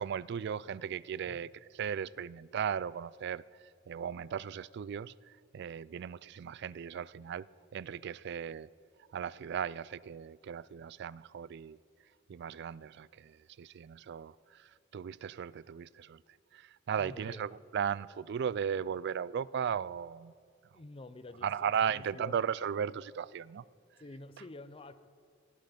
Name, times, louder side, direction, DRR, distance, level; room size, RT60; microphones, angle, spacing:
voice 1, 0.0-3.4 3.9-7.5 7.7-8.7 9.1-11.8 12.3-16.2 16.5-20.3 21.4-23.6, right 8 dB, 60° right, 0.3 m, -36 dB
voice 2, 17.0-17.4 20.7-22.4 24.0-25.0, left 2 dB, 30° left, 0.6 m, -48 dB
19.5 x 12.5 x 5.1 m
head